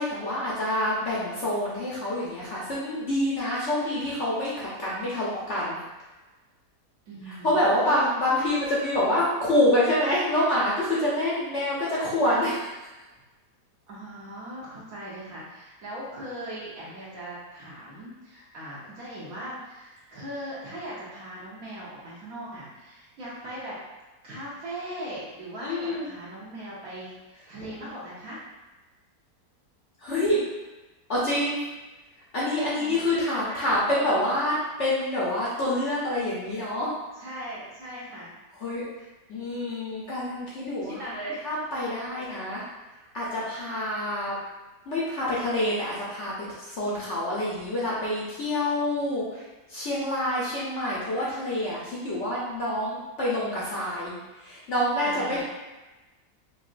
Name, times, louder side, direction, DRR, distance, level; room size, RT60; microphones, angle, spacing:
voice 1, 0.0-5.8 7.3-12.7 25.6-26.1 30.0-30.4 31.1-31.6 32.3-36.9 38.6-38.8 39.3-40.9 41.4-42.6 43.1-44.3 44.9-46.3 46.6-49.4 49.7-54.1 54.4-55.4, left 1 dB, 55° left, -7 dB, 0.9 m, -27 dB
voice 2, 7.1-8.3 13.9-23.8 24.2-28.4 32.7-33.8 37.2-38.3 39.0-39.1 40.8-41.5 55.0-55.4, right 1 dB, 60° right, -6 dB, 1.3 m, -39 dB
5.0 x 2.4 x 2.5 m, 1.1 s
omnidirectional pair, 1.8 m